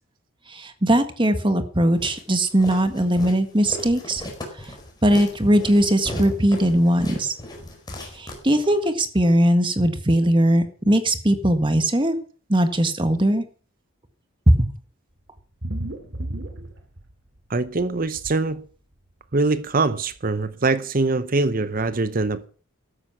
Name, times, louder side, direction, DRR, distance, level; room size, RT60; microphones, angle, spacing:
voice 1, 0.5-4.2 5.0-7.3 8.2-12.2 12.5-13.4 14.5-14.7, right 1 dB, 25° right, 1.7 m, -19 dB
Walk footsteps, 2.0-8.9, left 1 dB, 20° left, 4.7 m, -37 dB
sound 1, 15.4-17.4 17.7-18.3 19.3-19.4 19.8-19.9 20.1-20.2, right 1 dB, 60° right, 2.8 m, -33 dB
voice 2, 17.5-18.6 19.3-22.5, right 3 dB, 45° right, 0.8 m, -23 dB
14.0 x 13.0 x 6.2 m
head